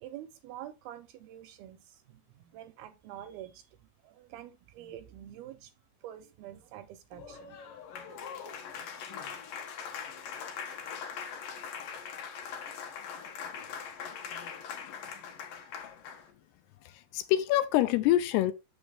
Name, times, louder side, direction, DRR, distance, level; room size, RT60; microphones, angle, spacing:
voice 1, 0.0-3.8 4.0-5.7 6.0-7.6, right 12 dB, 80° right, 2.2 m, -47 dB
Applause, 7.1-16.3, left 7 dB, 65° left, 2.5 m, -41 dB
voice 2, 16.9-18.5, left 14 dB, 80° left, 2.5 m, -26 dB
6.9 x 6.3 x 3.4 m
omnidirectional pair, 4.8 m